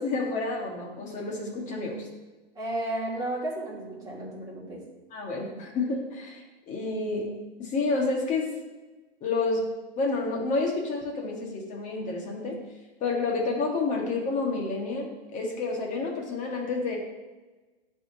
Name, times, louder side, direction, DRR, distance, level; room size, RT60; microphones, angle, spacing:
voice 1, 0.0-2.1 5.1-7.3 7.6-8.5 9.2-9.6 10.0-12.6 13.0-17.0, left 3 dB, 25° left, 0 dB, 1.4 m, -29 dB
voice 2, 2.6-4.8, right 1 dB, 10° right, -6 dB, 2.0 m, -33 dB
11.0 x 3.7 x 2.7 m, 1.2 s
hypercardioid pair, 115°, 31 cm